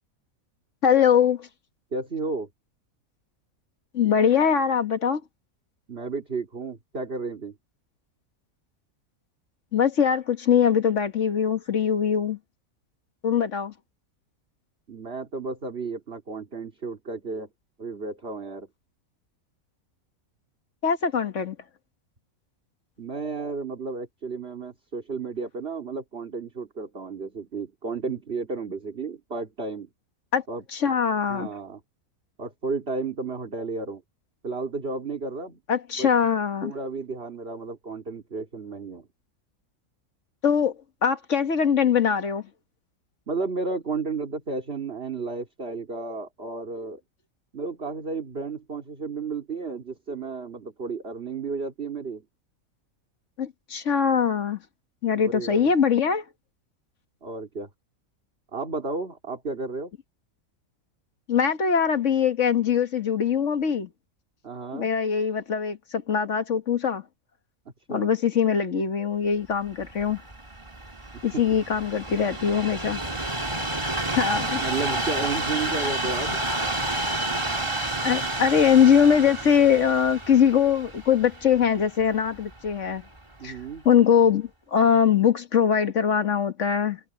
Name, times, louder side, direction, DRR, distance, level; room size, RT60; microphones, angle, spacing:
voice 1, 0.8-1.5 3.9-5.2 9.7-12.4 13.2-13.7 20.8-21.6 30.3-30.4 30.7-31.5 35.7-36.7 40.4-40.8 41.0-42.4 53.4-54.6 55.0-56.2 61.3-63.9 64.7-67.0 67.9-70.2 71.2-73.0 74.2-74.6 78.0-83.0 83.4-83.6 83.9-87.0, left 7 dB, 60° left, 1.8 m, -22 dB
voice 2, 1.9-2.5 5.9-7.6 14.9-17.5 17.8-18.7 23.0-29.9 30.5-30.6 31.3-31.8 32.4-34.0 34.4-35.6 36.0-36.1 36.6-39.1 43.3-47.0 47.5-52.2 55.1-55.7 57.2-57.7 58.5-59.9 64.4-64.9 67.9-68.1 74.5-76.4 83.4-83.9, right 4 dB, 45° right, 2.8 m, -32 dB
Train, 69.7-82.9 83.6-83.7, right 2 dB, 20° right, 2.0 m, -30 dB
omnidirectional pair, 1.5 m